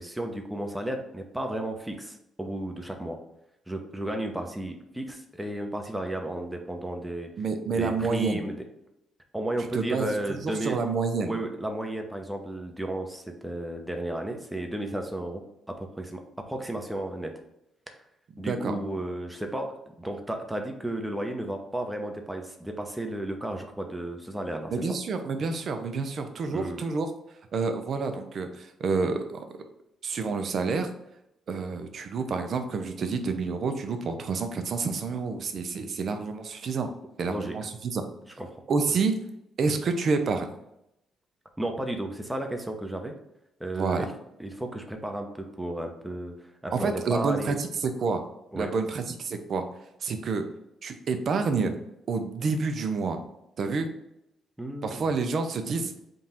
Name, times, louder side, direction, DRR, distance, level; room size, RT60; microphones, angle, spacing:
voice 1, 0.0-3.2 3.7-7.3 7.7-8.6 9.3-10.8 11.2-17.3 18.4-24.9 26.5-26.8 37.2-37.5 38.4-38.6 41.6-43.1 43.6-44.0 44.4-47.6 48.5-48.7 54.6-55.1, right 1 dB, 5° right, 3 dB, 0.7 m, -33 dB
voice 2, 7.4-8.5 9.6-11.4 18.4-18.7 24.7-27.1 27.5-29.4 30.0-30.9 31.5-36.9 37.2-38.1 38.7-39.2 39.6-40.5 43.7-44.1 46.7-48.2 48.5-49.6 50.0-50.5 50.8-51.7 52.1-53.2 53.6-53.9 54.8-55.9, right 4 dB, 55° right, 7 dB, 0.5 m, -28 dB
3.8 x 2.4 x 4.2 m, 0.83 s
cardioid pair, 90°, 0 cm